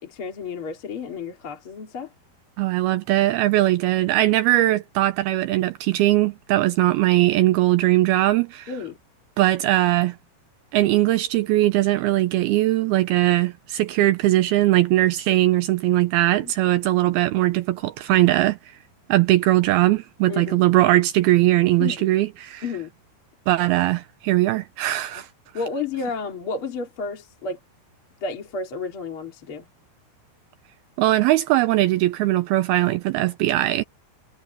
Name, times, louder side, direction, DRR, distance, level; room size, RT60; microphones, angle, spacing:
voice 1, 0.0-2.1 8.7-9.0 16.4-16.5 20.3-20.6 21.8-22.1 22.6-22.9 25.5-27.6 28.2-29.6, left 4 dB, 35° left, 3.0 m, -31 dB
voice 2, 2.6-8.7 9.4-10.2 10.7-18.6 19.1-22.6 23.5-25.3 31.0-33.8, right 16 dB, 80° right, 2.3 m, -20 dB
omnidirectional pair, 4.9 m